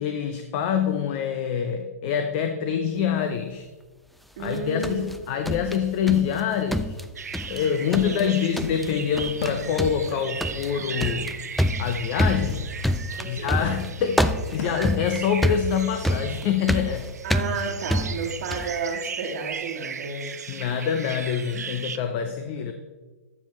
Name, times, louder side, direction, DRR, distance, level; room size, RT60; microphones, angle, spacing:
voice 1, 0.0-3.7 4.4-7.0 7.5-11.4 11.8-12.7 13.2-17.1 20.5-22.7, left 8 dB, 40° left, 7 dB, 0.7 m, -26 dB
sound 1, 4.4-6.4 6.7-7.6 7.9-8.3 8.6-8.9 9.2-9.5 9.8-18.8, equal, ahead, 0.3 m, -27 dB
voice 2, 4.4-5.3 7.8-8.3 13.2-13.7 17.2-20.3 22.3-22.4, right 4 dB, 55° right, -3 dB, 1.4 m, -32 dB
sound 2, 7.2-22.0, right 6 dB, 90° right, 0.6 m, -37 dB
Fireworks, 9.0-18.9, left 3 dB, 65° left, 1.8 m, -44 dB
12.5 x 7.1 x 3.2 m, 1.3 s
hypercardioid pair, 135°, 9 cm